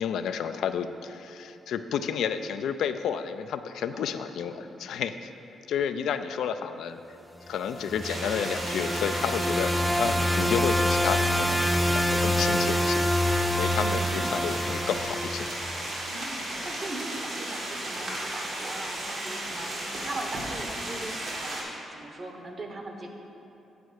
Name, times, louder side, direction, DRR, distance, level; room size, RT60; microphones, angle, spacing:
voice 1, 0.0-5.3 5.7-7.0 7.5-13.1 13.5-15.5, left 7 dB, 80° left, 9 dB, 0.3 m, -31 dB
voice 2, 3.9-4.8 13.8-14.1 16.0-21.6 21.9-23.1, right 2 dB, 45° right, 3 dB, 1.0 m, -40 dB
sound 1, 7.7-15.9, equal, 5° right, 0.4 m, -26 dB
sound 2, 8.0-21.6, right 1 dB, 75° right, 1.9 m, -35 dB
8.1 x 4.1 x 6.3 m, 2.8 s
cardioid pair, 75°, 0 cm